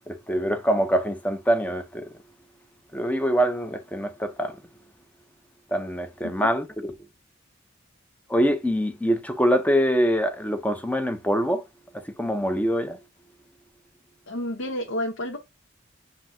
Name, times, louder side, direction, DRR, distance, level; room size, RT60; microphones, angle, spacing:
voice 1, 0.1-2.1 2.9-4.5 5.7-6.9 8.3-11.6 12.2-13.0, equal, 10° left, 0.5 m, -24 dB
voice 2, 14.3-15.4, left 1 dB, 85° left, 0.8 m, -30 dB
7.5 x 2.7 x 2.6 m
head